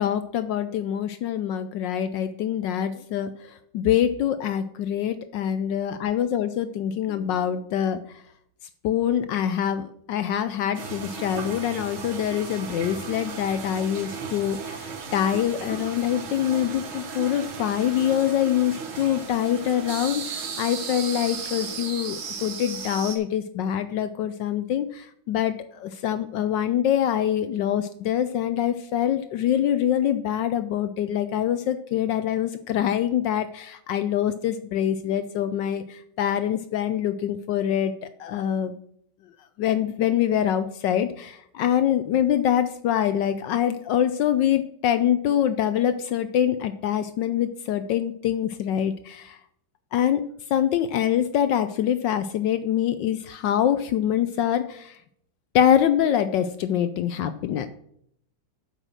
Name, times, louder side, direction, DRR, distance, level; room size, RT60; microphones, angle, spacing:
voice 1, 0.0-3.3 3.7-8.0 8.8-37.9 38.2-38.7 39.6-49.4 49.9-50.2 50.5-55.0 55.5-57.7, left 10 dB, 75° left, 11 dB, 1.0 m, -25 dB
sound 1, 10.7-23.2, right 5 dB, 70° right, 1.9 m, -35 dB
8.1 x 5.7 x 6.2 m, 0.70 s
omnidirectional pair, 2.3 m